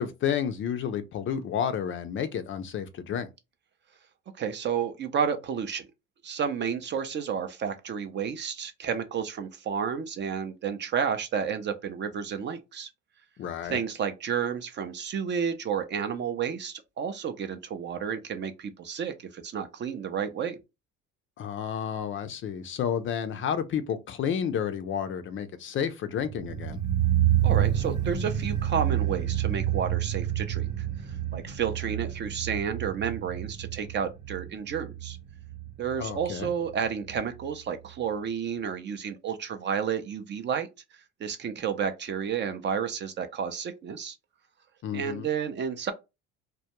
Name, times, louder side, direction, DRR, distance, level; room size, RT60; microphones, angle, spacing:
voice 1, 0.0-3.3 13.4-13.8 21.4-26.8 36.0-36.5 44.8-45.3, left 8 dB, 40° left, 0.4 m, -31 dB
voice 2, 4.4-5.9 6.2-12.9 13.7-20.6 27.4-30.9 31.3-35.2 35.8-40.7 41.2-44.2 44.9-45.9, right 7 dB, 35° right, 0.4 m, -31 dB
sound 1, 26.2-37.2 37.4-37.5, right 11 dB, 70° right, 0.9 m, -29 dB
2.2 x 2.1 x 2.9 m
supercardioid pair, 90°, 33 cm